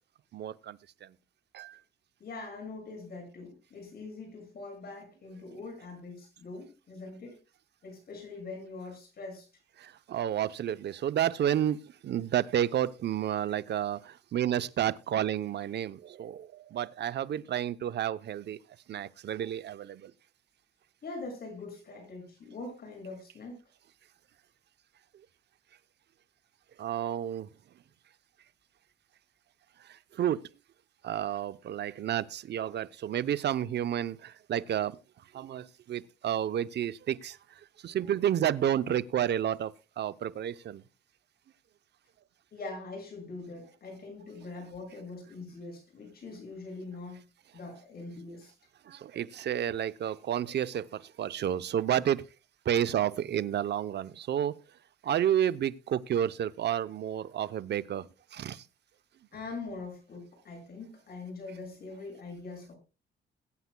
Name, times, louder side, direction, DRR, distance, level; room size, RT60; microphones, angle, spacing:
voice 1, 0.3-1.1 1.5-1.8 9.8-11.8 12.0-18.6 18.9-20.1 26.8-27.5 30.2-30.4 31.0-35.0 35.3-37.4 37.8-40.8 48.9-52.2 52.7-54.6 55.0-58.6, right 10 dB, 60° right, 0.7 m, -30 dB
voice 2, 2.2-7.4 7.8-9.5 19.3-19.5 21.0-23.6 37.9-38.1 42.5-47.3 47.5-48.5 59.3-62.8, left 3 dB, 50° left, 7.2 m, -43 dB
21.0 x 9.4 x 2.2 m
cardioid pair, 90°, 20 cm